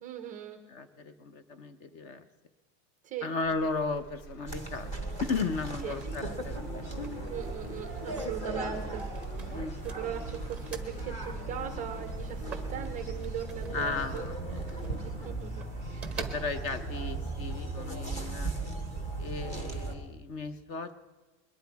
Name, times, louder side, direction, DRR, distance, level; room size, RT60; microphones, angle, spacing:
voice 1, 0.0-0.6 3.0-3.3 5.8-6.0 7.3-9.1 9.4-9.6 9.8-14.3 15.0-16.2, right 9 dB, 20° right, 7 dB, 0.4 m, -39 dB
voice 2, 0.7-2.3 3.2-4.9 5.2-7.1 9.5-9.8 13.7-15.1 16.2-18.5 19.2-20.9, left 4 dB, 35° left, 12 dB, 0.7 m, -35 dB
Motor vehicle (road), 3.4-17.4 17.9-18.4, left 1 dB, 65° left, 1.9 m, -50 dB
sound 1, 4.3-16.9, right 5 dB, 5° right, 0.8 m, -48 dB
sound 2, 4.5-20.0, right 2 dB, 15° left, 1.3 m, -37 dB
22.0 x 10.5 x 4.6 m, 1.2 s
cardioid pair, 175°, 41 cm